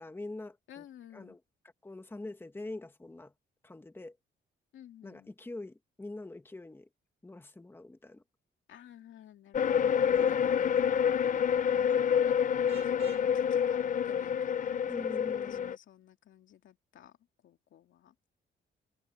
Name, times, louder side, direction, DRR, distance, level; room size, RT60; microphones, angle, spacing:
voice 1, 0.0-0.8 1.1-1.4 1.8-3.3 3.6-4.2 5.0-6.9 7.2-8.2 9.9-11.1 14.9-15.8, left 2 dB, 10° left, 1.5 m, -45 dB
voice 2, 0.7-1.4 4.7-5.3 8.7-10.7 11.7-17.2 17.4-18.1, left 11 dB, 75° left, 2.3 m, -53 dB
sound 1, 9.5-15.8, left 8 dB, 40° left, 0.6 m, -28 dB
Vehicle horn car horn honking, 12.7-13.3, right 12 dB, 90° right, 5.3 m, -50 dB
cardioid pair, 135°, 20 cm